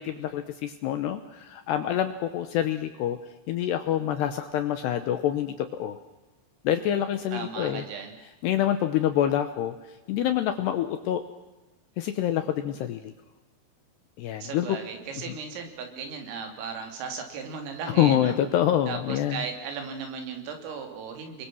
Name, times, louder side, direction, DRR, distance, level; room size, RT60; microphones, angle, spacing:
voice 1, 0.0-3.2 3.5-6.0 6.6-7.8 8.4-11.2 12.0-13.1 14.2-14.8 15.3-15.4 17.9-19.4, left 11 dB, 75° left, 9 dB, 2.6 m, -26 dB
voice 2, 7.3-8.1 14.4-18.3 18.9-21.5, right 5 dB, 80° right, 5 dB, 5.7 m, -36 dB
29.0 x 22.5 x 6.3 m, 1.1 s
omnidirectional pair, 5.9 m